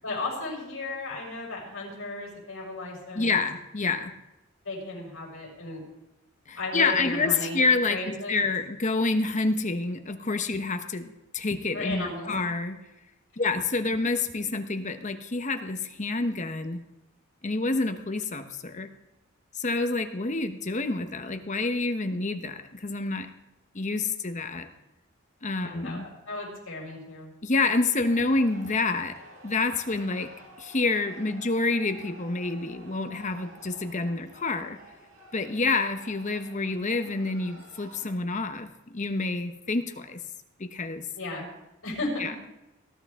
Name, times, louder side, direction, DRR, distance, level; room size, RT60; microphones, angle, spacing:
voice 1, 0.0-3.4 4.6-5.8 6.6-7.6 7.9-8.4 11.7-12.3 25.6-27.3 41.2-41.5 41.8-42.3, left 2 dB, 80° left, -2 dB, 5.7 m, -35 dB
voice 2, 3.1-4.2 6.5-12.8 13.4-16.8 17.4-18.9 19.5-23.3 23.7-24.7 25.4-26.1 27.4-30.3 30.6-34.8 35.3-40.2 40.6-41.1 42.2-42.3, left 3 dB, 35° left, 8 dB, 1.0 m, -28 dB
sound 1, 28.0-38.1, right 1 dB, 80° right, 5.1 m, -51 dB
19.0 x 11.5 x 3.6 m, 0.94 s
head